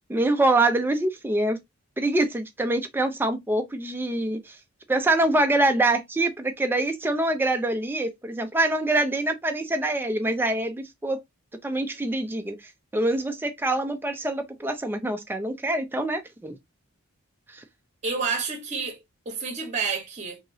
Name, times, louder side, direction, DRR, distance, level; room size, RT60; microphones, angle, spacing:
voice 1, 0.1-1.6 2.0-4.6 4.9-11.2 11.6-12.6 12.9-16.6 17.5-17.6, right 2 dB, 10° right, 0.4 m, -25 dB
voice 2, 18.0-20.4, right 5 dB, 35° right, 0.8 m, -29 dB
2.9 x 2.8 x 2.6 m
head